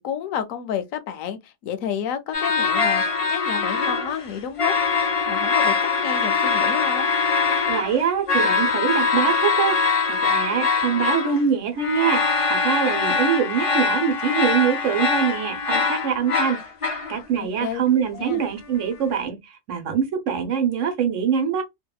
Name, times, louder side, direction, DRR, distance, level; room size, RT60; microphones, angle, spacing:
voice 1, 0.0-5.0 5.3-7.1 17.4-17.8 18.1-18.4, left 8 dB, 80° left, 1.0 m, -30 dB
sound 1, 2.3-4.3 4.6-11.4 11.8-17.2, left 5 dB, 60° left, 0.3 m, -23 dB
voice 2, 7.7-12.2 12.5-16.6 17.1-21.6, right 7 dB, 70° right, 1.0 m, -24 dB
2.7 x 2.1 x 2.2 m
omnidirectional pair, 1.4 m